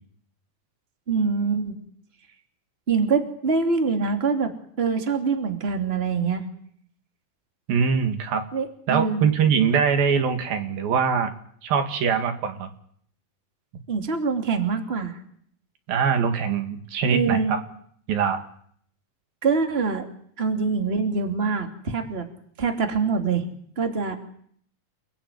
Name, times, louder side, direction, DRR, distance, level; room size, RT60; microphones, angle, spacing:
voice 1, 1.1-1.7 2.9-4.5 4.8-6.4 8.5-9.3 13.9-15.2 17.1-17.5 19.4-20.1 20.4-22.3 22.6-23.4 23.8-24.2, right 5 dB, 20° right, 5 dB, 2.7 m, -24 dB
voice 2, 7.7-8.4 8.9-11.3 11.6-12.7 15.9-17.6 18.1-18.4, right 6 dB, 80° right, 7 dB, 4.0 m, -22 dB
29.0 x 20.0 x 9.4 m, 0.64 s
omnidirectional pair, 4.1 m